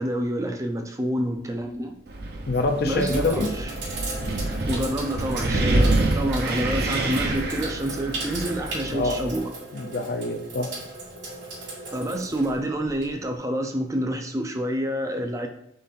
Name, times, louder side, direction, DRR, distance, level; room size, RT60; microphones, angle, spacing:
voice 1, 0.0-1.9 2.8-3.7 4.7-9.5 11.9-15.5, equal, 15° right, 4 dB, 0.4 m, -28 dB
Sink (filling or washing), 1.4-1.8 2.4-13.3, right 2 dB, 85° right, 1.8 m, -37 dB
Wind, 2.1-9.4, right 2 dB, 60° right, 0.7 m, -27 dB
voice 2, 2.5-3.5 8.9-9.2 9.7-10.7, left 2 dB, 60° left, 5 dB, 0.6 m, -25 dB
3.9 x 3.2 x 4.1 m, 0.75 s
head